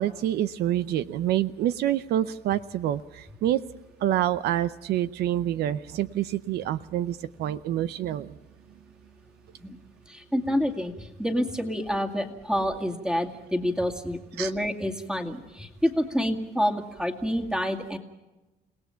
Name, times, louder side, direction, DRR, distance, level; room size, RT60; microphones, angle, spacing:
voice 1, 0.0-3.6 4.0-8.4 14.4-14.5, right 12 dB, 75° right, 14 dB, 0.7 m, -27 dB
voice 2, 10.1-18.0, equal, 5° right, 5 dB, 2.3 m, -28 dB
29.5 x 18.0 x 5.8 m, 1.1 s
cardioid pair, 110°, 17 cm